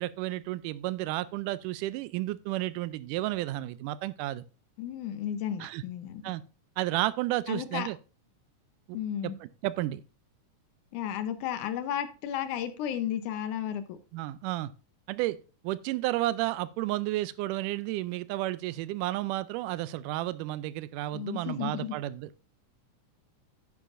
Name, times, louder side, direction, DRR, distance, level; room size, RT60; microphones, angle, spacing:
voice 1, 0.0-4.4 5.6-5.8 6.2-6.4 6.8-8.0 8.9-9.0 9.4-10.0 14.1-14.7 15.1-15.4 15.6-22.4, right 16 dB, 85° right, 2.1 m, -32 dB
voice 2, 4.8-6.2 7.5-7.9 8.9-9.4 10.9-14.0 21.1-22.0, left 10 dB, 75° left, 2.2 m, -33 dB
10.0 x 9.5 x 2.5 m
omnidirectional pair, 3.6 m